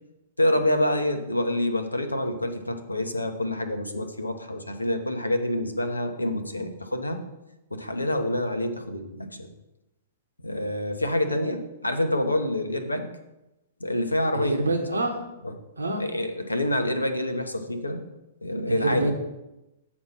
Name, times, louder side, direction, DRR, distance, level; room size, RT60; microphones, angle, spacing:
voice 1, 0.4-7.2 7.7-9.5 10.4-13.1 13.8-14.6 14.9-15.0 15.4-15.5 16.0-18.0 18.4-19.1, left 1 dB, 85° left, 7 dB, 0.9 m, -27 dB
voice 2, 14.3-15.2 15.8-16.0 18.7-19.1, right 2 dB, 80° right, 4 dB, 1.1 m, -26 dB
8.4 x 4.3 x 5.8 m, 0.95 s
figure-of-eight pair, 110°, 0 cm